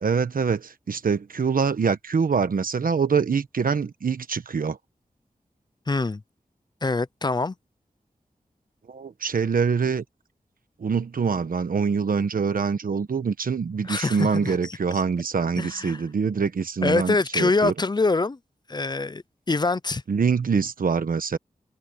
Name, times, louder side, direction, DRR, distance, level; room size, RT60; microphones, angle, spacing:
voice 1, 0.0-4.8 8.9-10.0 10.8-17.7 20.1-21.4, right 5 dB, 85° right, 1.1 m, -24 dB
voice 2, 5.9-6.2 6.8-7.5 13.8-14.8 15.6-16.0 16.8-18.4 18.7-19.2 19.5-20.0, left 3 dB, 30° left, 0.6 m, -24 dB
wide cardioid pair, 90°, 14 cm